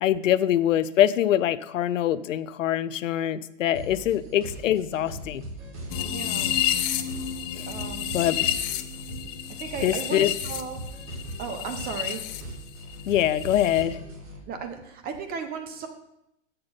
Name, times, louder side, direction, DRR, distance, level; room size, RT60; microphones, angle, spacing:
voice 1, 0.0-5.4 7.5-7.7 8.1-8.5 9.8-10.3 13.1-14.0, left 11 dB, 90° left, 15 dB, 0.6 m, -24 dB
sound 1, 3.7-14.4, right 1 dB, 45° right, 3.2 m, -40 dB
sound 2, 5.9-12.4 12.7-13.8, left 11 dB, 30° left, 0.6 m, -30 dB
voice 2, 6.0-6.5 7.7-8.3 9.6-10.8 11.4-12.2 14.5-15.9, right 6 dB, 25° right, 6 dB, 0.8 m, -35 dB
8.7 x 6.8 x 5.7 m, 0.82 s
hypercardioid pair, 140°, 37 cm